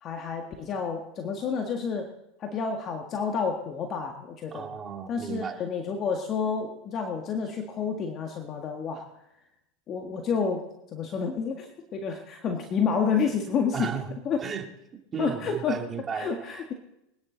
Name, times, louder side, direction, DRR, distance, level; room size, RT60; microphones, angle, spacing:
voice 1, 0.0-2.1 2.4-4.7 5.1-9.0 9.9-10.6 10.9-13.9 14.3-14.4 15.2-15.8 16.1-16.7, left 6 dB, 40° left, 3 dB, 1.8 m, -29 dB
voice 2, 4.5-5.6 13.7-14.7 15.1-16.6, right 6 dB, 25° right, 3 dB, 2.5 m, -35 dB
24.5 x 10.0 x 4.0 m, 0.88 s
hypercardioid pair, 105°, 0 cm